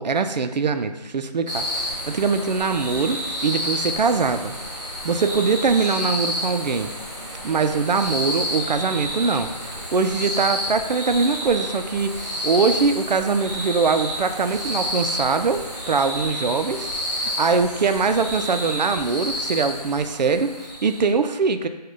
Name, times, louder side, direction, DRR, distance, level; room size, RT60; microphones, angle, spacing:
voice 1, 0.0-4.5 5.0-6.9 7.4-21.7, right 4 dB, 85° right, 9 dB, 0.4 m, -22 dB
sound 1, 1.5-21.1, left 1 dB, 25° right, 0.9 m, -30 dB
4.2 x 2.2 x 4.7 m, 1.1 s
figure-of-eight pair, 180°, 21 cm